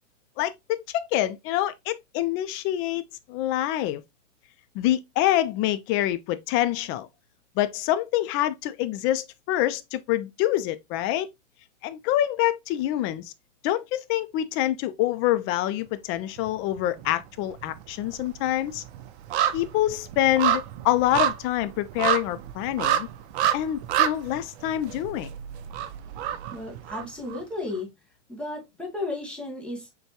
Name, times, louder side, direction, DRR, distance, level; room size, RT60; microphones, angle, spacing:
voice 1, 0.4-3.0 3.3-4.0 4.7-7.1 7.6-11.3 11.8-13.3 13.6-18.8 19.5-23.1 23.5-25.3, left 13 dB, 35° left, 0.4 m, -26 dB
sound 1, 16.4-17.1 17.4-27.4 27.7-27.8, right 10 dB, 60° right, 0.6 m, -28 dB
voice 2, 26.5-27.9 28.3-29.9, left 2 dB, 5° left, 1.4 m, -34 dB
6.6 x 2.2 x 2.8 m
supercardioid pair, 125°, 36 cm